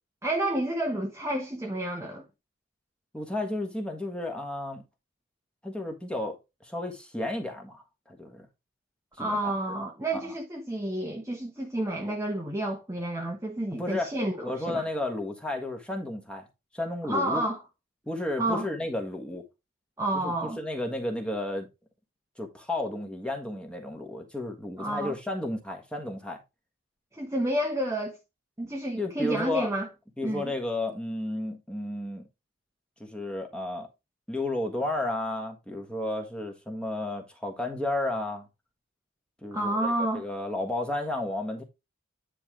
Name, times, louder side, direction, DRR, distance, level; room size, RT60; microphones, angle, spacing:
voice 1, 0.2-2.2 9.2-14.8 17.1-17.6 18.4-18.7 20.0-20.6 24.8-25.2 27.1-28.2 28.6-29.9 30.2-30.5 39.5-40.2, right 1 dB, 15° right, 0.9 m, -30 dB
voice 2, 3.1-4.8 5.6-6.4 6.6-7.8 8.1-8.5 9.2-9.5 10.1-10.3 13.7-14.1 14.4-16.5 16.7-17.4 18.0-19.4 20.1-21.7 22.4-26.4 29.0-29.7 30.2-32.2 33.0-33.9 34.3-38.5 39.4-41.6, left 1 dB, 5° left, 1.4 m, -32 dB
9.8 x 3.3 x 4.8 m
head